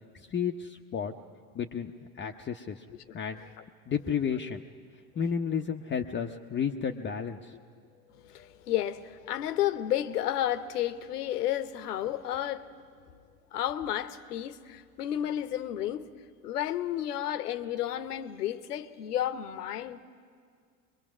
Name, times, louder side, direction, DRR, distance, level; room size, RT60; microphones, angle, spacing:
voice 1, 0.1-1.1 1.5-2.8 3.1-3.4 3.9-4.6 5.1-7.6, left 7 dB, 25° left, 0.8 m, -32 dB
voice 2, 8.2-12.7 13.5-16.1 16.4-20.0, left 12 dB, 75° left, 1.0 m, -32 dB
24.0 x 22.0 x 6.2 m
hypercardioid pair, 75°, 47 cm